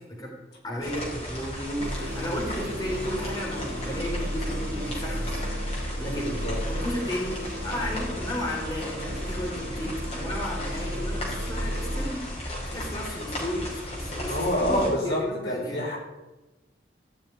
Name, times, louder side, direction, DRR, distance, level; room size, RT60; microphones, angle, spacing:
voice 1, 0.6-5.4 5.8-7.4 7.6-15.8, equal, 20° left, -2 dB, 3.8 m, -34 dB
sound 1, 0.8-14.9, left 1 dB, 35° left, 5.2 m, -36 dB
sound 2, 1.8-12.1, equal, 75° right, 1.4 m, -34 dB
voice 2, 6.2-6.6 14.3-16.0, left 1 dB, 70° left, -2 dB, 4.9 m, -27 dB
15.5 x 7.1 x 9.7 m, 1.1 s
head